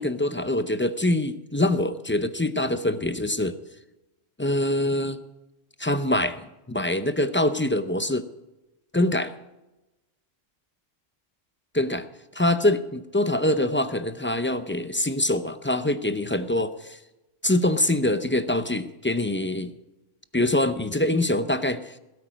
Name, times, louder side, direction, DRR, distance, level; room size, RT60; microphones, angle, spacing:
voice 1, 0.0-3.6 4.4-5.2 5.8-6.4 6.7-8.2 8.9-9.3 11.7-12.1 12.3-17.0 17.4-19.7 20.3-22.0, left 1 dB, 15° left, 11 dB, 0.4 m, -24 dB
16.0 x 13.0 x 5.1 m, 1.0 s
omnidirectional pair, 1.3 m